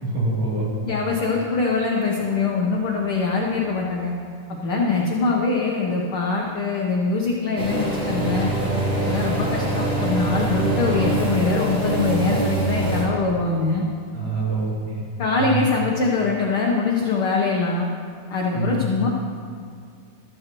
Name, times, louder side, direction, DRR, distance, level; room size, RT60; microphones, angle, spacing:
voice 1, 0.0-0.7 14.1-15.0 15.3-15.6 18.5-18.8, right 3 dB, 75° right, -6 dB, 4.6 m, -25 dB
voice 2, 0.8-4.1 4.5-8.5 9.0-13.9 15.2-17.9 18.3-19.1, left 4 dB, 75° left, -2 dB, 1.2 m, -23 dB
sound 1, 7.6-13.0, right 2 dB, 20° right, 3.3 m, -24 dB
14.5 x 14.0 x 3.0 m, 2.2 s
omnidirectional pair, 3.8 m